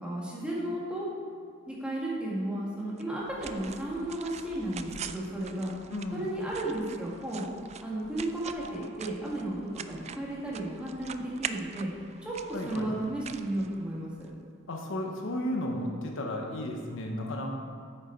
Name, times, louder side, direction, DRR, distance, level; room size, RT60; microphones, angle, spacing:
voice 1, 0.0-1.1 1.7-5.7 6.1-7.5 7.8-9.6 9.9-11.9 12.2-12.3 12.7-14.3, right 1 dB, 5° right, -6 dB, 1.9 m, -34 dB
sound 1, 3.0-14.3, right 7 dB, 30° right, 0.3 m, -44 dB
voice 2, 5.9-6.3 8.7-8.8 12.5-12.9 14.7-17.5, left 1 dB, 65° left, 1 dB, 0.9 m, -34 dB
8.8 x 6.7 x 4.5 m, 2.2 s
head